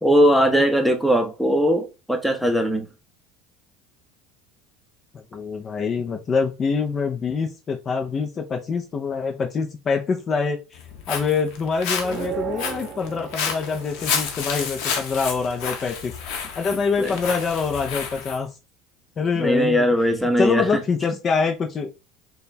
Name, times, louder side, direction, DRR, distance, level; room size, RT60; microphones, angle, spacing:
voice 1, 0.0-2.9 17.0-17.1 19.4-20.7, equal, ahead, 0.8 m, -19 dB
voice 2, 5.1-10.8 11.1-16.1 16.6-18.5 19.2-19.8 20.2-21.9, left 5 dB, 35° left, 0.7 m, -25 dB
Walk footsteps, 10.7-18.4, left 6 dB, 70° left, 0.9 m, -30 dB
sound 1, 12.0-14.7, right 9 dB, 45° right, 0.8 m, -35 dB
4.3 x 2.4 x 3.2 m
supercardioid pair, 90°, 0 cm